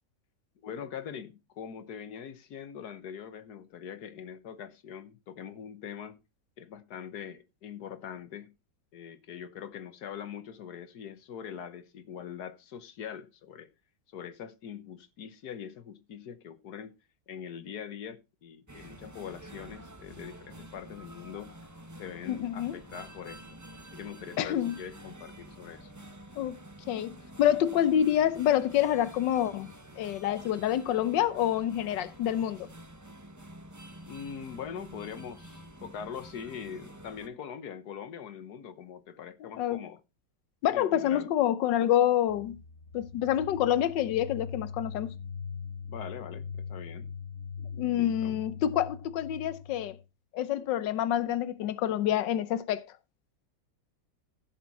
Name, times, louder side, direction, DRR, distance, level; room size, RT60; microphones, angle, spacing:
voice 1, 0.6-6.2 6.6-8.5 8.9-13.7 14.1-17.0 17.3-21.6 22.0-23.6 23.9-25.9 34.1-40.0 40.7-41.3 45.9-47.1 48.0-48.4, left 8 dB, 65° left, 1.5 m, -42 dB
sound 1, 18.7-37.3, right 1 dB, 15° right, 0.8 m, -49 dB
voice 2, 22.3-22.8 24.4-24.7 26.4-26.6 26.9-29.7 30.0-32.7 39.6-39.8 40.6-42.6 42.9-45.1 47.7-50.0 50.3-52.8, left 11 dB, 85° left, 1.4 m, -27 dB
sound 2, 42.3-50.0, left 6 dB, 45° left, 1.2 m, -41 dB
15.5 x 6.0 x 4.1 m
omnidirectional pair, 1.9 m